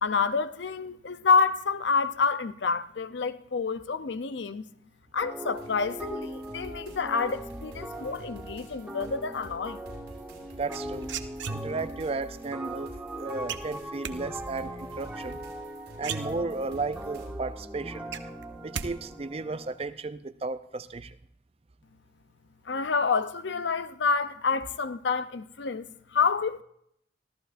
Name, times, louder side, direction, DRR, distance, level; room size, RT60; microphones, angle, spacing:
voice 1, 0.0-4.7 5.1-9.8 22.7-26.6, left 5 dB, 70° left, 0.6 m, -28 dB
sound 1, 5.2-19.8, right 1 dB, 5° right, 1.1 m, -40 dB
sound 2, 5.5-17.3, right 1 dB, 60° right, 5.7 m, -48 dB
voice 2, 10.6-11.1 11.5-15.4 16.0-18.0 18.6-21.2, right 3 dB, 30° right, 0.5 m, -34 dB
sound 3, 10.7-12.0 13.5-14.2 15.6-15.7 16.0-16.8 17.2-17.3 17.6-18.9 19.2-19.6, right 6 dB, 75° right, 0.7 m, -36 dB
25.5 x 14.0 x 2.6 m
head